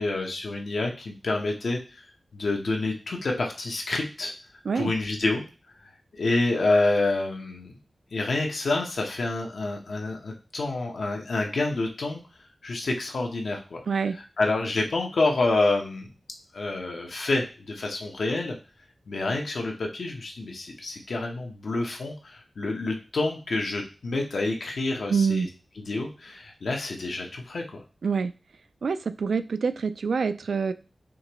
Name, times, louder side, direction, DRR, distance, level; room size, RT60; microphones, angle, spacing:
voice 1, 0.0-1.8 2.3-4.3 4.7-5.4 6.1-7.8 8.1-12.2 12.6-13.8 14.4-16.1 16.5-18.6 19.1-25.5 25.8-27.6, left 2 dB, 75° left, 1 dB, 0.9 m, -28 dB
voice 2, 13.9-14.2 25.1-25.5 28.0-28.3 28.8-30.7, right 5 dB, 85° right, 11 dB, 0.3 m, -26 dB
5.1 x 2.9 x 3.0 m, 0.34 s
wide cardioid pair, 120°, 0 cm